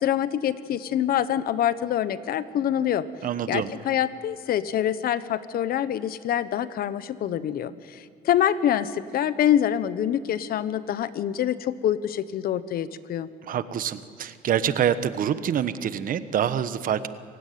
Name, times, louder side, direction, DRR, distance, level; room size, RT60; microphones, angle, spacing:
voice 1, 0.0-3.0 3.5-13.3, left 10 dB, 60° left, 15 dB, 1.1 m, -25 dB
voice 2, 3.2-3.7 13.4-17.1, right 9 dB, 55° right, 13 dB, 1.2 m, -26 dB
27.5 x 16.5 x 9.4 m, 2.3 s
cardioid pair, 110°, 17 cm